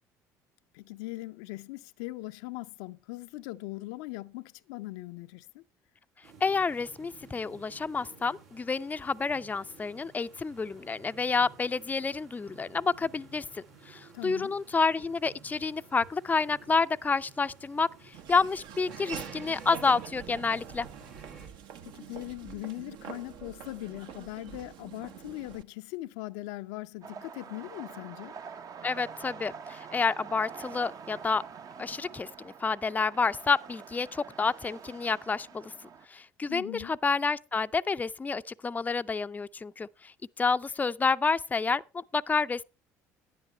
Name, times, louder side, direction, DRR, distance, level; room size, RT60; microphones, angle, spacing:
voice 1, 0.7-5.6 14.1-14.6 21.8-28.4 36.5-36.9, left 19 dB, 70° left, 0.5 m, -40 dB
sound 1, 6.2-21.5, right 4 dB, 80° right, 2.9 m, -52 dB
voice 2, 6.4-17.9 18.3-20.9 28.8-31.4 31.8-35.7 36.1-39.9 40.4-42.6, left 4 dB, 20° left, 0.5 m, -29 dB
Laughter / Walk footsteps, 18.1-25.6, right 9 dB, 65° right, 1.1 m, -45 dB
sound 2, 27.0-36.1, right 6 dB, 45° right, 0.8 m, -46 dB
11.0 x 10.5 x 4.3 m
hypercardioid pair, 60°, 9 cm